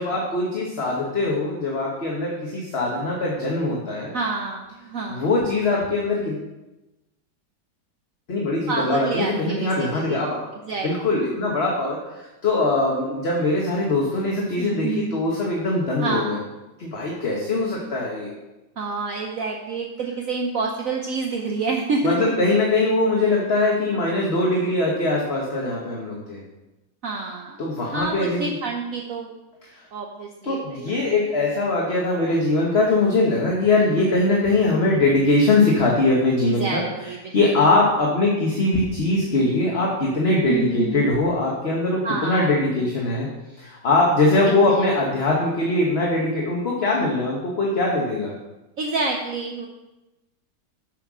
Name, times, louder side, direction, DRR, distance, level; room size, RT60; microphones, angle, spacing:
voice 1, 0.0-4.1 5.1-6.4 8.3-10.4 10.8-16.4 16.8-18.3 22.0-26.4 27.6-28.5 30.4-36.8 37.3-43.3 43.6-48.3, left 2 dB, 40° left, -2 dB, 1.4 m, -22 dB
voice 2, 4.1-5.3 8.7-10.2 10.7-10.9 14.6-15.2 16.0-16.3 18.8-22.3 27.0-27.6 27.8-29.3 29.9-30.9 36.5-37.4 40.5-41.1 42.0-42.5 44.5-44.9 48.8-49.7, right 3 dB, 55° right, 1 dB, 1.1 m, -28 dB
7.6 x 6.6 x 6.2 m, 1.0 s
omnidirectional pair, 1.9 m